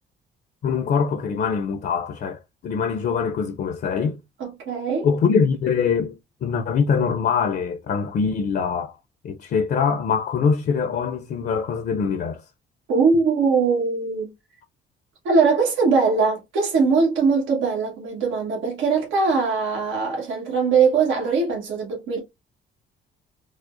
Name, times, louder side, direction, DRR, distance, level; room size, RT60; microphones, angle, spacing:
voice 1, 0.6-4.2 5.0-9.0 9.2-12.4, left 6 dB, 55° left, 0.5 m, -23 dB
voice 2, 4.4-5.1 12.9-14.3 15.2-22.2, right 4 dB, 85° right, 1.3 m, -21 dB
4.8 x 2.0 x 2.5 m
cardioid pair, 90°, 20 cm